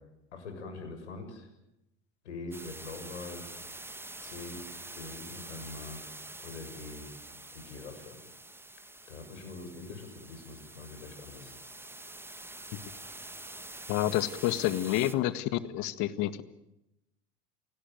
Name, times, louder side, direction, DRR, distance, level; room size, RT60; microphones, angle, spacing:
voice 1, 0.3-1.5 2.2-3.4 4.2-4.6 4.9-6.0 6.4-7.1 7.5-8.2 9.1-11.6, left 3 dB, 85° left, 6 dB, 7.2 m, -43 dB
sound 1, 2.5-15.1, right 2 dB, 5° right, 1.7 m, -46 dB
voice 2, 13.9-16.4, left 14 dB, 55° left, 13 dB, 1.9 m, -29 dB
28.0 x 18.5 x 9.2 m, 0.88 s
hypercardioid pair, 80°, 34 cm